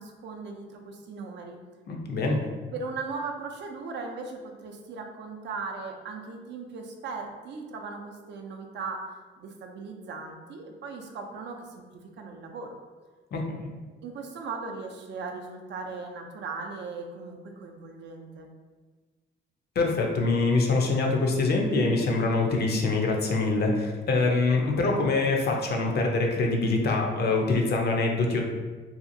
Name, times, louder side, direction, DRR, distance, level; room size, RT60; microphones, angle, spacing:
voice 1, 0.0-1.6 2.7-9.0 9.4-12.7 14.0-18.5, right 4 dB, 65° right, 2 dB, 0.5 m, -38 dB
voice 2, 1.9-2.4 13.3-13.7 19.8-28.4, left 3 dB, 55° left, 1 dB, 0.5 m, -24 dB
2.7 x 2.4 x 2.6 m, 1.3 s
cardioid pair, 90°, 20 cm